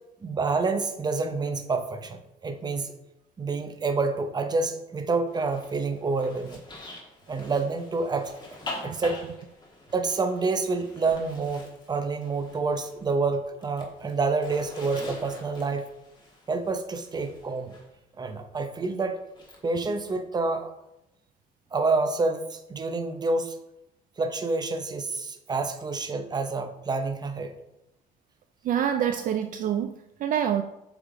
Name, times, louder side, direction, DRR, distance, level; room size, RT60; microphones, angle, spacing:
voice 1, 0.2-2.9 3.4-6.6 7.3-8.3 8.8-9.2 9.9-15.9 16.5-17.8 18.2-19.2 19.6-20.7 21.7-23.6 24.2-27.5, right 3 dB, 25° right, 7 dB, 0.7 m, -28 dB
Zipper (clothing), 5.3-13.1 13.4-17.9 19.3-20.1, left 2 dB, 25° left, 1.6 m, -44 dB
voice 2, 28.6-30.6, right 9 dB, 55° right, 7 dB, 0.4 m, -26 dB
8.1 x 3.5 x 3.7 m, 0.85 s
cardioid pair, 110°, 17 cm